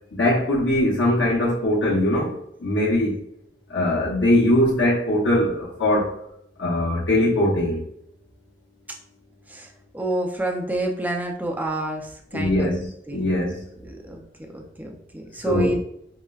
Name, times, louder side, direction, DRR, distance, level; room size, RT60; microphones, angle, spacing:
voice 1, 0.1-2.3 2.6-3.2 3.7-6.1 6.6-7.8 12.3-13.6 15.5-15.8, left 1 dB, 70° left, -6 dB, 0.8 m, -21 dB
voice 2, 9.5-12.7 13.1-13.4 13.8-15.8, right 1 dB, 10° right, 1 dB, 0.4 m, -29 dB
4.6 x 2.1 x 2.3 m, 0.75 s
head